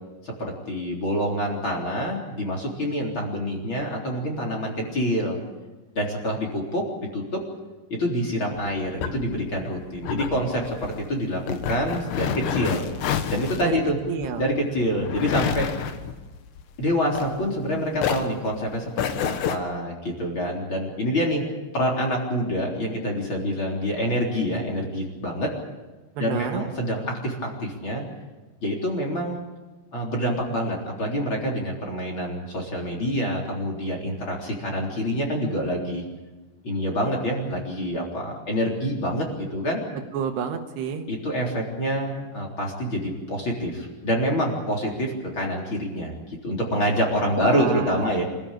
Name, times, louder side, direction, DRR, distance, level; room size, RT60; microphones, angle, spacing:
voice 1, 0.2-5.4 5.9-6.9 7.1-7.4 7.9-12.9 13.3-14.0 14.4-15.7 16.8-21.4 21.7-25.5 26.2-28.0 28.6-29.5 29.9-36.0 36.6-39.8 41.1-48.2, equal, 30° left, 0 dB, 4.0 m, -26 dB
sound 1, 8.5-17.7 18.0-19.6, left 8 dB, 75° left, 3.4 m, -29 dB
voice 2, 14.1-14.4 26.2-26.6 40.1-41.0 47.4-48.1, right 8 dB, 75° right, 5 dB, 3.4 m, -29 dB
26.0 x 15.0 x 8.9 m, 1.2 s
omnidirectional pair, 5.1 m